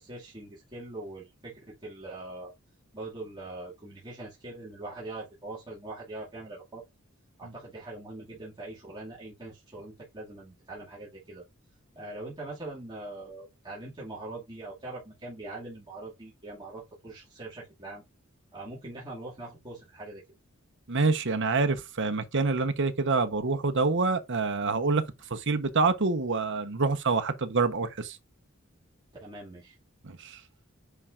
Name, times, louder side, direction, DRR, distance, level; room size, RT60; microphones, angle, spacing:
voice 1, 0.0-2.5 2.9-6.8 7.4-11.4 12.0-18.0 18.5-20.2 29.2-29.8, right 2 dB, 20° right, 2.4 m, -42 dB
voice 2, 20.9-25.0 25.3-28.2 30.0-30.4, right 4 dB, 60° right, 1.1 m, -26 dB
9.5 x 4.5 x 2.6 m
head